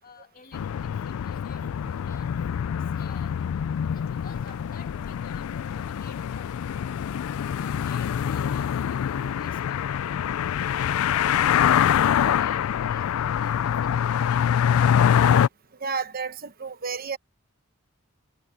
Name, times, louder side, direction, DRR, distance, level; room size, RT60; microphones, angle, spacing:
voice 1, 0.0-2.4 2.8-6.6 7.6-10.1 11.8-15.2, left 4 dB, 40° left, 2.4 m, -51 dB
sound 1, 0.5-15.5, left 9 dB, 80° left, 0.3 m, -25 dB
voice 2, 15.8-17.2, right 5 dB, 40° right, 1.1 m, -31 dB
head